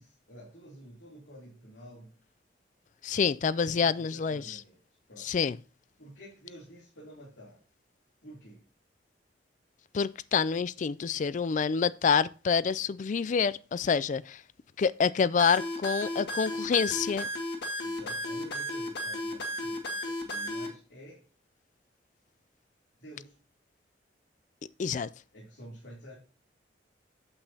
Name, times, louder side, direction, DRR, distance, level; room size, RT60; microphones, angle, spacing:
voice 1, 0.0-2.1 3.5-4.8 5.1-5.3 6.0-7.6 8.2-8.6 17.8-21.3 23.0-23.3 25.3-26.1, equal, 80° left, 3.1 m, -50 dB
voice 2, 3.0-4.6 5.2-5.6 9.9-14.4 14.8-17.3 24.8-25.1, left 6 dB, 40° left, 0.3 m, -27 dB
sound 1, 15.4-20.7, equal, 65° left, 1.8 m, -34 dB
8.7 x 8.1 x 2.8 m
head